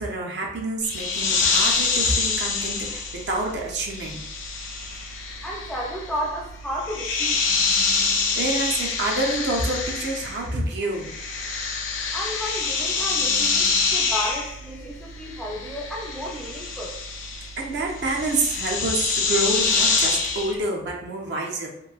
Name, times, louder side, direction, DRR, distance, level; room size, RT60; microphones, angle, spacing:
voice 1, 0.0-4.2 8.4-11.1 17.6-21.7, right 2 dB, 60° right, -1 dB, 0.5 m, -27 dB
sound 1, 0.8-10.6 10.8-20.6, left 4 dB, 90° left, 0.5 m, -26 dB
voice 2, 5.4-7.4 12.1-16.9, equal, 5° left, -4 dB, 0.4 m, -32 dB
3.0 x 2.6 x 2.3 m, 0.81 s
head